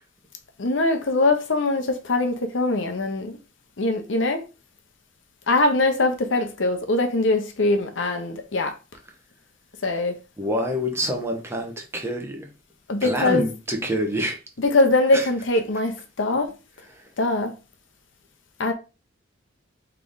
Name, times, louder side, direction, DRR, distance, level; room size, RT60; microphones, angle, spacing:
voice 1, 0.6-3.4 3.8-4.4 5.5-8.7 9.8-10.1 12.9-13.5 14.6-16.5 17.2-17.5 18.6-18.7, left 2 dB, 75° left, 0.8 m, -22 dB
voice 2, 10.4-12.5 13.0-14.4 15.1-15.3, equal, 15° right, 0.8 m, -27 dB
3.5 x 3.4 x 3.9 m
head